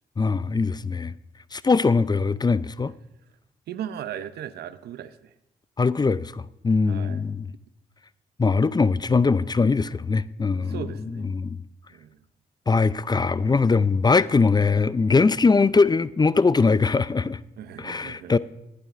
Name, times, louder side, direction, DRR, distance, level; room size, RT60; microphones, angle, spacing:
voice 1, 0.2-1.1 1.5-2.9 5.8-7.5 8.4-10.8 11.3-11.6 12.7-17.4 17.8-18.4, left 4 dB, 25° left, 0.4 m, -21 dB
voice 2, 3.7-5.3 6.9-7.2 10.5-11.3 11.9-12.2 17.6-18.4, right 10 dB, 80° right, 0.6 m, -37 dB
19.5 x 11.5 x 2.5 m
supercardioid pair, 55°, 16 cm